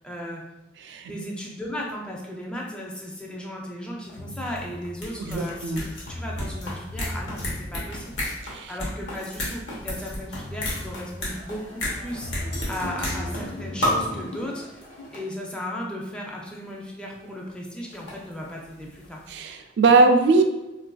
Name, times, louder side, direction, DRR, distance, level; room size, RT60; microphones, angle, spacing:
voice 1, 0.0-0.4 1.1-8.2 8.7-12.3 12.7-14.7 15.1-19.2, left 1 dB, 5° left, -2 dB, 0.4 m, -35 dB
sound 1, 4.1-4.2 4.4-13.5 13.8-14.2 14.8-14.9 15.1-15.2 16.5-16.6 17.7-19.1 19.4-19.5, left 1 dB, 90° left, 0.9 m, -32 dB
sound 2, 4.2-4.7 5.7-5.8 6.1-7.7 10.0-10.1 10.3-11.0 12.2-14.0, left 1 dB, 60° left, 0.5 m, -37 dB
voice 2, 5.2-5.8 8.4-8.7 19.3-20.4, right 3 dB, 70° right, 6 dB, 0.3 m, -20 dB
sound 3, 10.0-15.3, left 1 dB, 45° left, 1.0 m, -41 dB
3.4 x 2.4 x 2.2 m, 1.0 s
head